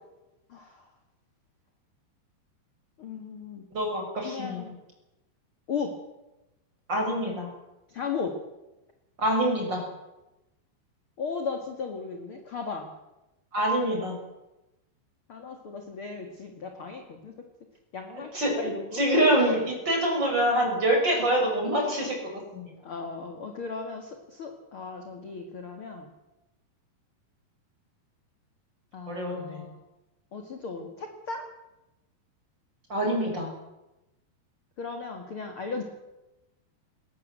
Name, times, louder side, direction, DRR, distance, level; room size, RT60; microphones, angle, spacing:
voice 1, 0.5-0.9 3.0-3.7 4.2-4.7 5.7-5.9 7.9-8.4 11.2-12.9 15.3-17.4 17.9-19.0 22.8-26.1 28.9-29.8 30.3-31.5 34.8-35.8, left 5 dB, 45° left, 4 dB, 1.9 m, -36 dB
voice 2, 3.7-4.6 6.9-7.5 9.2-9.8 13.5-14.1 18.3-18.5 18.9-22.2 22.5-22.7 29.1-29.6 32.9-33.5, right 1 dB, 25° right, 1 dB, 6.0 m, -25 dB
20.5 x 19.0 x 7.7 m, 0.99 s
omnidirectional pair, 5.1 m